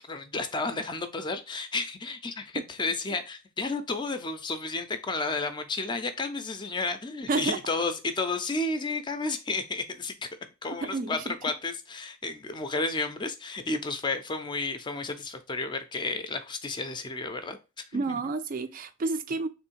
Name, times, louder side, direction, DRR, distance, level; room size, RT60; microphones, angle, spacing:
voice 1, 0.1-10.3 10.6-18.2, left 3 dB, 20° left, 0.4 m, -32 dB
voice 2, 10.8-11.3 17.9-19.5, right 3 dB, 40° right, 0.4 m, -30 dB
3.4 x 3.1 x 4.5 m
head